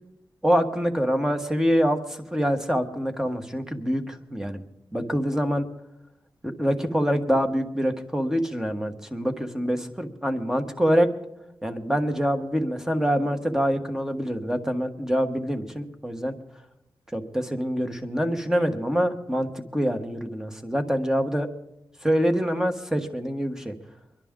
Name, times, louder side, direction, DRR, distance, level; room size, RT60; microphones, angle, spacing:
voice 1, 0.4-4.6 4.9-5.7 6.4-11.1 11.6-16.3 17.1-21.5 22.0-23.7, equal, 5° right, 6 dB, 1.2 m, -25 dB
24.0 x 11.5 x 3.7 m, 0.89 s
wide cardioid pair, 110°, 8 cm